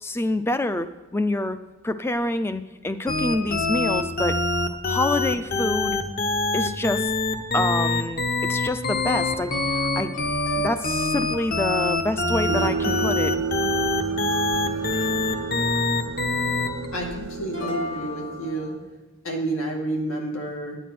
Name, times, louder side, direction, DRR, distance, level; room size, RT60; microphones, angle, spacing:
voice 1, 0.0-4.4 4.8-6.0 6.5-7.1 7.5-13.3, left 1 dB, 10° left, 11 dB, 0.4 m, -27 dB
sound 1, 3.1-16.9, left 3 dB, 45° left, 0.9 m, -24 dB
sound 2, 9.1-16.9 17.5-18.7, equal, 60° left, 1.7 m, -39 dB
sound 3, 12.5-18.7, right 5 dB, 80° right, 0.6 m, -30 dB
voice 2, 16.9-18.7 19.2-20.8, right 1 dB, 85° left, 1 dB, 2.3 m, -29 dB
10.0 x 9.1 x 6.0 m, 1.2 s
head